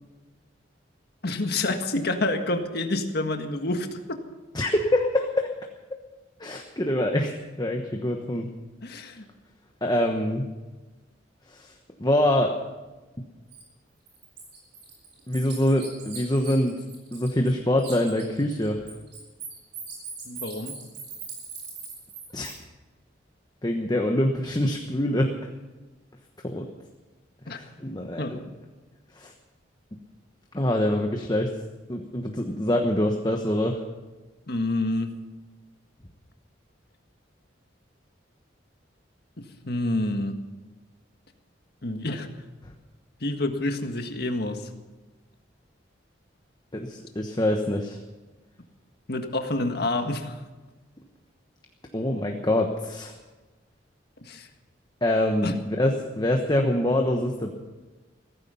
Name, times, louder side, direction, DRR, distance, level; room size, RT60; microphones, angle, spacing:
voice 1, 1.2-4.2 8.8-9.3 20.3-20.7 27.5-27.6 28.2-28.3 34.5-35.1 39.6-40.4 41.8-42.3 43.2-44.7 49.1-50.4 54.2-54.5 55.4-55.6, left 2 dB, 60° left, 5 dB, 1.7 m, -28 dB
voice 2, 4.5-5.5 6.4-8.5 9.8-10.5 11.5-11.7 12.0-12.5 15.3-16.7 17.1-18.8 22.3-22.5 23.6-25.3 26.4-26.7 27.5-28.4 29.2-29.3 30.5-31.5 31.9-33.8 46.7-48.0 51.9-53.1 55.0-57.6, left 1 dB, 20° left, 3 dB, 1.1 m, -25 dB
Bird, 13.5-13.6 14.1-17.5 17.8-22.5, right 5 dB, 70° right, 6.3 m, -40 dB
16.5 x 15.0 x 5.7 m, 1.2 s
head